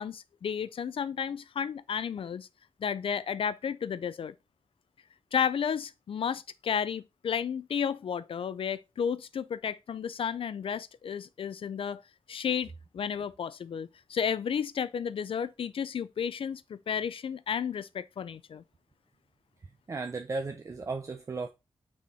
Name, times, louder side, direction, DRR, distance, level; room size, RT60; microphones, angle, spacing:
voice 1, 0.0-2.5 2.8-4.3 5.3-12.0 12.3-18.6, left 7 dB, 70° left, 0.4 m, -32 dB
voice 2, 19.9-21.5, right 3 dB, 35° right, 0.6 m, -35 dB
6.2 x 4.4 x 5.3 m
wide cardioid pair, 160°, 10 cm